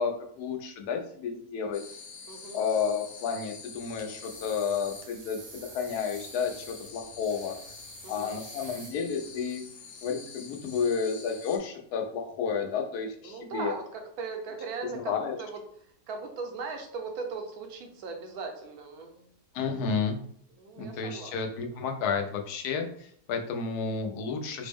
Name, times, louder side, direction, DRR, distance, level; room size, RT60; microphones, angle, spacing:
voice 1, 0.0-1.8 2.5-5.4 5.7-7.6 8.1-9.6 10.0-13.7 14.9-15.4 19.5-20.2 20.8-24.7, left 6 dB, 85° left, 4 dB, 1.1 m, -31 dB
sound 1, 1.7-11.6, left 5 dB, 65° left, 1.0 m, -46 dB
voice 2, 2.3-2.6 8.0-8.3 13.2-15.6 16.1-19.3 20.6-21.4 21.7-21.8, right 4 dB, 80° right, 4 dB, 1.2 m, -38 dB
sound 2, 3.7-9.4, right 4 dB, 60° right, 0.9 m, -50 dB
4.3 x 2.0 x 3.4 m, 0.63 s
omnidirectional pair, 1.6 m